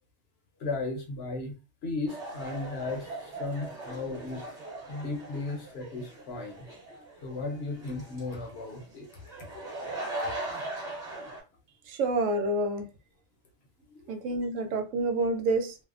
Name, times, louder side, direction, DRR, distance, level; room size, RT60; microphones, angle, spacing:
voice 1, 0.6-4.4 4.9-6.7 7.2-9.1 9.4-9.5 10.2-10.3 13.9-14.2, left 3 dB, 60° left, 0.8 m, -36 dB
sound 1, 2.1-11.4, right 2 dB, 35° right, 1.2 m, -40 dB
voice 2, 11.9-12.9 14.1-15.8, right 2 dB, 80° right, 1.0 m, -28 dB
2.6 x 2.0 x 2.4 m
omnidirectional pair, 1.3 m